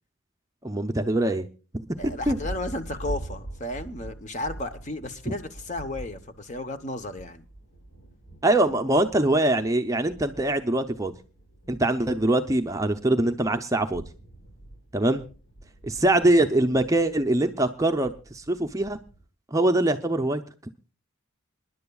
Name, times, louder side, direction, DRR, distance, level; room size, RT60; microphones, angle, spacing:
voice 1, 0.6-1.5 2.3-2.4 8.4-11.1 11.7-14.0 14.9-15.3 15.8-19.0 19.5-20.4, right 1 dB, 15° right, 7 dB, 0.5 m, -23 dB
Thunder, 1.7-19.3, right 1 dB, 80° left, 6.2 m, -43 dB
voice 2, 2.0-7.4 8.7-8.8, left 2 dB, 35° left, 9 dB, 0.9 m, -34 dB
27.0 x 11.0 x 2.3 m, 0.34 s
head